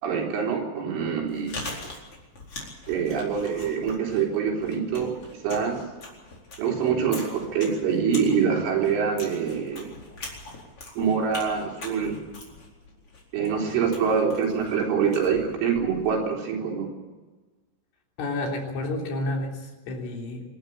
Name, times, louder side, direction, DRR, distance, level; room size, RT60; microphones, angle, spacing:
voice 1, 0.0-1.6 2.9-5.1 5.4-5.8 6.6-9.9 11.0-12.2 13.3-16.9, right 6 dB, 85° right, 0 dB, 6.5 m, -25 dB
Chewing mastication, 1.2-16.2, left 2 dB, 30° left, 4.8 m, -42 dB
voice 2, 18.2-20.4, left 2 dB, 85° left, 1 dB, 6.1 m, -30 dB
25.0 x 12.5 x 8.7 m, 1.2 s
omnidirectional pair, 5.5 m